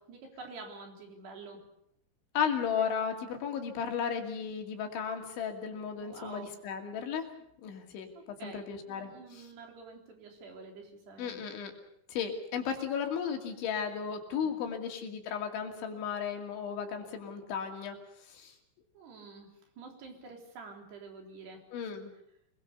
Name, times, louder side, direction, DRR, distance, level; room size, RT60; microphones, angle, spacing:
voice 1, 0.0-1.7 6.0-6.5 8.2-11.4 14.4-14.8 18.3-18.6 18.9-21.6, right 4 dB, 60° right, 2 dB, 5.7 m, -48 dB
voice 2, 2.3-7.3 7.6-8.1 8.4-9.5 11.2-11.7 12.1-18.5 21.7-22.1, left 7 dB, 75° left, 3 dB, 4.9 m, -35 dB
27.0 x 21.5 x 6.9 m, 0.75 s
omnidirectional pair, 5.5 m